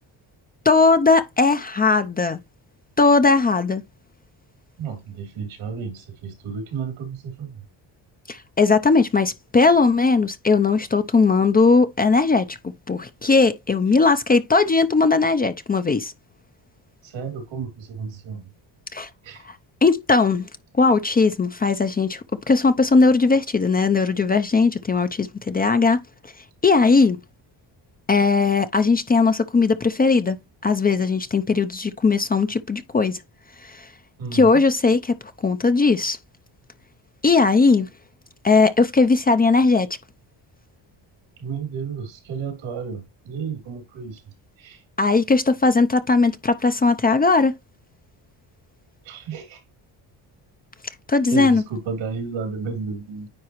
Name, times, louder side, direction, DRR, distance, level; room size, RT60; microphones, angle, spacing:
voice 1, 0.7-2.4 3.0-3.8 8.3-12.6 12.9-16.1 18.9-19.1 19.8-20.5 20.7-26.3 26.6-27.2 28.1-30.4 30.6-33.2 33.6-33.9 34.3-35.2 35.4-36.2 37.2-37.9 38.4-39.9 45.0-47.5 51.1-51.6, left 4 dB, 20° left, 0.5 m, -18 dB
voice 2, 4.8-7.6 17.0-18.5 19.2-19.5 34.2-34.6 41.4-44.8 49.0-49.6 51.3-53.3, right 5 dB, 85° right, 3.1 m, -32 dB
9.7 x 4.1 x 3.0 m
cardioid pair, 135°, 45 cm